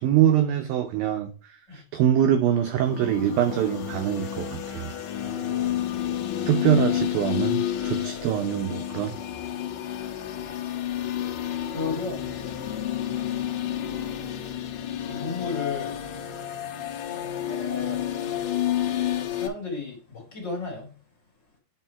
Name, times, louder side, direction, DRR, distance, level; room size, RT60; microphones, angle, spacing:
voice 1, 0.0-4.9 6.5-9.1, right 10 dB, 90° right, 2.0 m, -24 dB
sound 1, 2.6-19.5, left 11 dB, 90° left, 1.5 m, -30 dB
voice 2, 5.2-6.0 11.7-12.3 12.8-13.4 14.2-14.5 15.0-16.0 17.5-18.0 19.1-20.9, left 4 dB, 30° left, 2.4 m, -35 dB
8.7 x 4.8 x 4.5 m
omnidirectional pair, 5.0 m